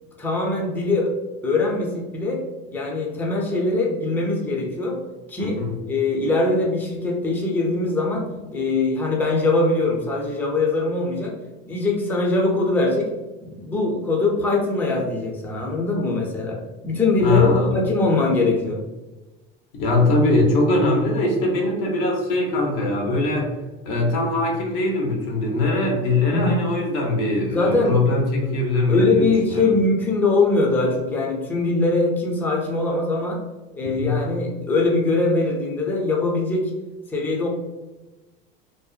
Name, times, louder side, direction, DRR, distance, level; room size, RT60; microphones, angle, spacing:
voice 1, 0.2-1.1 1.4-2.4 2.7-5.0 5.3-5.6 5.9-11.3 11.7-13.1 13.4-18.8 26.3-26.6 27.5-28.0 28.9-33.4 33.7-36.7 37.1-37.5, left 3 dB, 5° left, -1 dB, 0.4 m, -22 dB
voice 2, 5.4-5.8 17.2-17.7 19.8-23.5 23.8-29.7 33.8-34.2, left 2 dB, 85° left, 0 dB, 0.8 m, -21 dB
2.7 x 2.1 x 2.2 m, 1.1 s
supercardioid pair, 115°, 29 cm